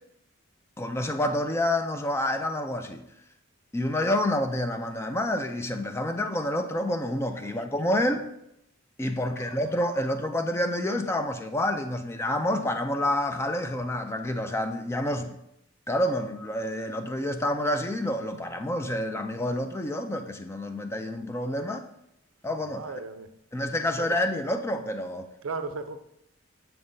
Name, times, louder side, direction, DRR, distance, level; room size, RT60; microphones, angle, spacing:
voice 1, 0.8-3.0 3.7-8.2 9.0-15.4 15.9-21.9 22.4-22.9 23.5-25.3, left 1 dB, 10° left, 0.3 m, -28 dB
voice 2, 9.1-9.7 22.6-23.3 24.0-24.2 25.4-26.0, right 4 dB, 70° right, 0.5 m, -37 dB
6.9 x 5.5 x 2.6 m
head